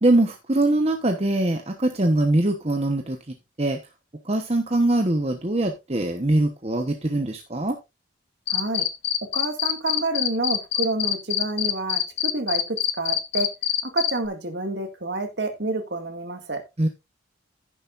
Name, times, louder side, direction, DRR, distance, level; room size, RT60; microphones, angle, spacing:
voice 1, 0.0-3.2 3.6-3.8 4.2-7.8 16.8-16.9, right 1 dB, 30° right, 1.0 m, -22 dB
Cricket, 8.5-14.1, left 12 dB, 65° left, 1.2 m, -24 dB
voice 2, 8.5-8.9 9.3-13.5 13.8-16.6, right 2 dB, 60° right, 2.0 m, -28 dB
10.5 x 10.5 x 2.5 m
head